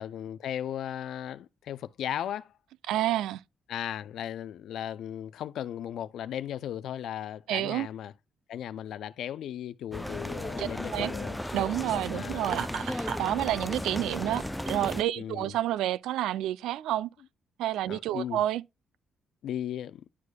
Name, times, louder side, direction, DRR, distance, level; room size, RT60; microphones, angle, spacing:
voice 1, 0.0-2.5 3.7-8.1 8.5-11.4 12.1-12.5 14.0-14.2 15.2-15.5 17.9-18.4 19.4-20.0, left 10 dB, 75° left, 0.3 m, -36 dB
voice 2, 2.9-3.4 7.5-7.9 10.6-11.1 11.5-17.1 17.6-18.6, right 13 dB, 90° right, 0.3 m, -29 dB
sound 1, 9.9-15.0, left 1 dB, 5° left, 0.4 m, -35 dB
Laughter, 12.4-13.4, right 7 dB, 70° right, 0.9 m, -34 dB
11.0 x 4.8 x 2.2 m
cardioid pair, 90°, 0 cm